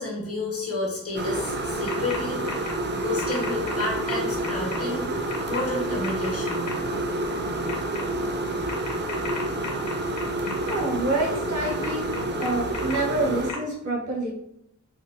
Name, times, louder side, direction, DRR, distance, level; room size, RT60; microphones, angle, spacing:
voice 1, 0.0-2.6 2.9-5.0 5.4-6.7, left 2 dB, 55° left, -2 dB, 1.2 m, -31 dB
sound 1, 1.1-13.5, right 1 dB, 40° right, 0.4 m, -29 dB
sound 2, 1.9-2.2 2.5-2.7 3.2-4.8 5.3-5.6 6.0-6.7 7.7-8.0 8.7-10.7 11.6-13.0 13.5-13.6, left 4 dB, 70° left, 0.7 m, -35 dB
voice 2, 10.7-14.3, right 2 dB, 90° right, -4 dB, 1.2 m, -27 dB
3.5 x 2.6 x 2.6 m, 0.76 s
wide cardioid pair, 105°, 29 cm